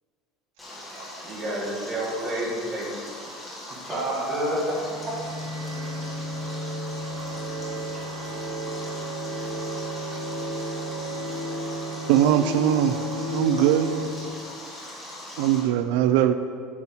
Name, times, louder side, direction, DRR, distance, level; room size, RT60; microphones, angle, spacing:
Stream, 0.6-15.6, left 1 dB, 10° left, 1.9 m, -40 dB
voice 1, 0.9-2.9 3.9-4.6, right 1 dB, 20° right, -5 dB, 2.0 m, -29 dB
voice 2, 3.9-6.7, left 2 dB, 35° left, -2 dB, 1.6 m, -45 dB
sound 1, 4.5-14.1, equal, 45° right, 1.1 m, -33 dB
voice 3, 12.1-13.0 13.3-14.0 15.4-16.3, right 11 dB, 70° right, 10 dB, 0.4 m, -21 dB
8.1 x 4.2 x 7.1 m, 2.3 s
cardioid pair, 175°, 0 cm